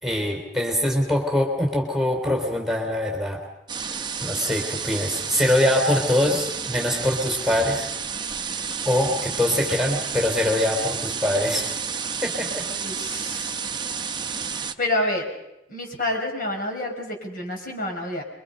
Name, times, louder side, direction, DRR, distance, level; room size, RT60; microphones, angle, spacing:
voice 1, 0.0-3.4 4.2-7.9 8.8-11.7 12.2-12.7, left 1 dB, ahead, 1 dB, 3.6 m, -23 dB
sound 1, 3.7-14.7, right 6 dB, 25° right, 0.9 m, -31 dB
voice 2, 12.7-13.6 14.8-15.3 15.7-18.2, left 1 dB, 50° left, 1 dB, 5.2 m, -28 dB
26.5 x 23.5 x 5.5 m, 0.90 s
head